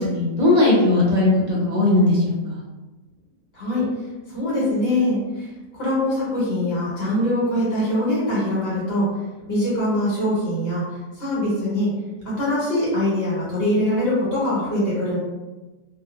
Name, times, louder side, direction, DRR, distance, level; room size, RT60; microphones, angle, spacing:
voice 1, 0.0-2.6, left 2 dB, 40° right, -5 dB, 0.6 m, -18 dB
voice 2, 3.5-3.9 4.3-5.5 5.7-9.1 9.5-10.8 11.1-12.0 12.2-15.2, left 1 dB, 50° left, -8 dB, 1.4 m, -23 dB
2.6 x 2.4 x 2.4 m, 1.2 s
omnidirectional pair, 1.4 m